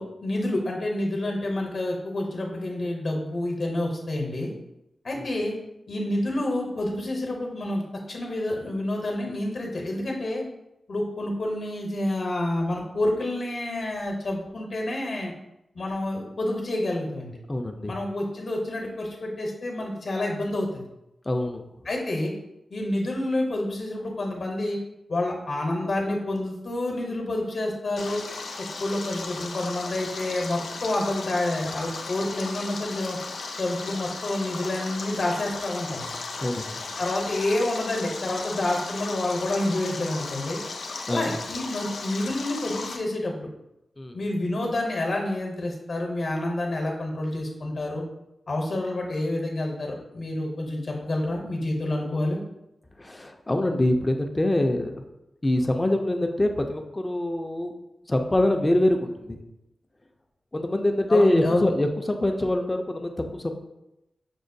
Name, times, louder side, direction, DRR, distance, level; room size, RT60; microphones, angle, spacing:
voice 1, 0.0-4.5 5.0-5.5 5.9-7.8 8.1-10.4 10.9-15.3 15.7-17.4 17.9-20.8 21.8-22.3 22.7-24.8 25.1-28.2 28.8-33.2 33.6-36.0 37.0-40.6 41.1-43.5 44.1-48.0 48.5-52.4 61.1-61.7, left 1 dB, 60° left, 0 dB, 0.7 m, -28 dB
voice 2, 17.5-18.0 21.3-21.6 36.4-36.8 41.1-41.3 44.0-44.2 53.0-54.9 55.4-57.7 58.1-59.4 60.5-63.5, left 1 dB, 20° left, 4 dB, 0.3 m, -24 dB
Stream, 28.0-43.0, left 3 dB, 90° left, 0.4 m, -36 dB
6.0 x 2.2 x 2.6 m, 0.89 s
wide cardioid pair, 125°, 0 cm